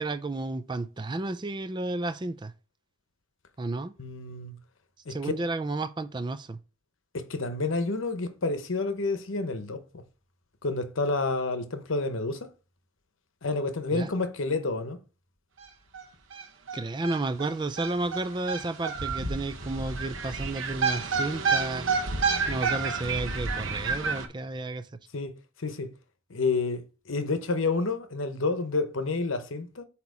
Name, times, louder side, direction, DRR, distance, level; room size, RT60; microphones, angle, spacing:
voice 1, 0.0-2.5 3.6-3.9 5.1-6.6 13.9-14.1 16.7-21.9 22.5-24.9, right 2 dB, 20° right, 0.3 m, -32 dB
voice 2, 4.0-4.6 5.1-5.3 7.1-10.0 10.6-12.5 13.4-15.0 25.1-25.3 25.6-25.9 26.3-29.8, left 3 dB, 75° left, 0.9 m, -29 dB
sound 1, 15.6-15.7 15.9-16.0 16.3-24.3, right 4 dB, 75° right, 1.0 m, -29 dB
8.0 x 3.0 x 4.8 m
head